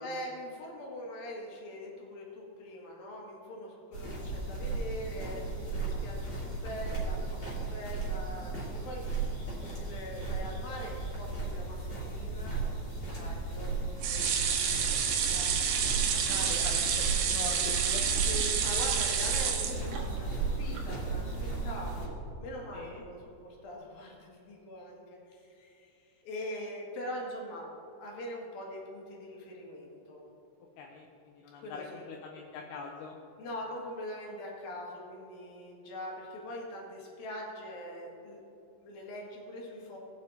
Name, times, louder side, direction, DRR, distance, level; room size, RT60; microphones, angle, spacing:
voice 1, 0.0-16.7 18.2-27.7 28.0-30.2 31.5-32.0 33.4-38.4 38.8-40.0, equal, 60° left, -2 dB, 3.4 m, -43 dB
sound 1, 3.9-22.1, right 3 dB, 30° left, 3.3 m, -35 dB
sound 2, 14.0-20.3 20.7-20.8 21.1-21.2, right 7 dB, 70° right, 2.4 m, -29 dB
voice 2, 16.1-18.0 22.7-23.0 30.8-33.2, left 4 dB, 75° left, 0 dB, 2.5 m, -43 dB
19.0 x 6.6 x 4.1 m, 2.8 s
omnidirectional pair, 5.1 m